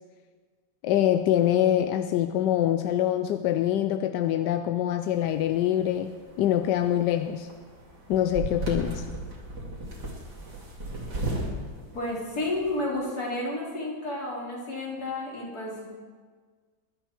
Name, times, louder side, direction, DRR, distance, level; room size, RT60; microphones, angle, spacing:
voice 1, 0.8-7.5 8.1-9.0, left 11 dB, 75° left, 9 dB, 1.1 m, -25 dB
sound 1, 5.1-12.8, right 2 dB, 55° right, 3.2 m, -36 dB
voice 2, 11.9-15.9, left 2 dB, 50° left, -4 dB, 3.7 m, -31 dB
21.5 x 11.5 x 4.5 m, 1.5 s
omnidirectional pair, 2.2 m